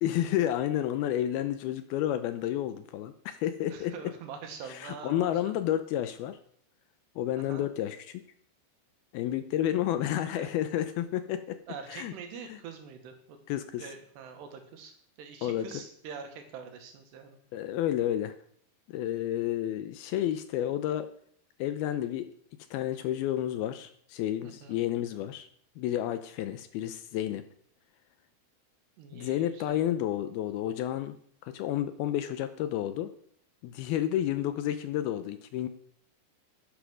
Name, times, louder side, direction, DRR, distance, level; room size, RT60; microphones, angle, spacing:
voice 1, 0.0-3.9 4.7-6.4 7.2-8.2 9.1-11.6 11.9-12.1 12.4-12.6 13.5-13.9 15.4-15.8 17.5-18.4 18.9-21.1 21.6-22.3 22.7-25.5 25.8-27.4 29.1-31.2 31.4-33.1 33.6-35.7, left 12 dB, 80° left, 11 dB, 2.4 m, -31 dB
voice 2, 3.7-5.6 7.4-7.7 10.4-10.6 11.7-13.4 13.8-17.4 24.4-24.8 29.0-29.7, right 6 dB, 80° right, 5 dB, 3.8 m, -44 dB
10.5 x 10.0 x 6.2 m, 0.63 s
omnidirectional pair, 4.8 m